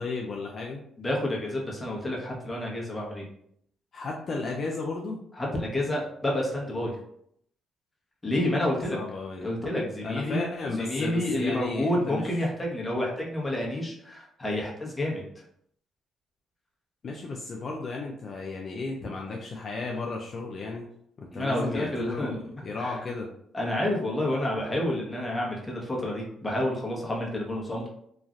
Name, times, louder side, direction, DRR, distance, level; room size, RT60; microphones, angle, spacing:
voice 1, 0.0-0.8 3.9-5.2 8.9-9.5 10.0-12.3 17.0-20.9 21.2-23.3, left 3 dB, 50° left, 0 dB, 0.4 m, -34 dB
voice 2, 1.0-3.2 5.4-6.9 8.2-9.0 9.4-10.4 10.8-15.2 21.3-22.4 22.8-23.0 23.5-27.9, left 1 dB, 20° left, -3 dB, 0.9 m, -29 dB
3.0 x 2.4 x 2.5 m, 0.70 s
cardioid pair, 90°, 0 cm